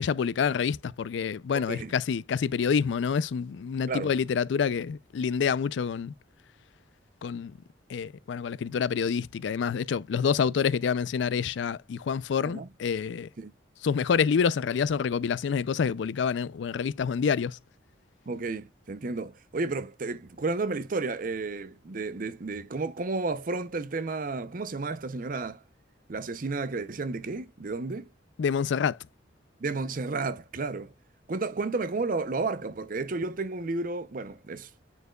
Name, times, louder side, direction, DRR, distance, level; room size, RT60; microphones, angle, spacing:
voice 1, 0.0-6.1 7.2-7.5 7.9-13.3 13.8-17.6 28.4-29.0, left 6 dB, 75° left, 0.4 m, -27 dB
voice 2, 1.5-1.9 3.9-4.1 12.4-12.7 13.4-13.5 18.3-25.6 26.1-28.1 29.6-30.9 31.3-34.7, right 3 dB, 45° right, 0.6 m, -32 dB
9.3 x 4.5 x 2.3 m
head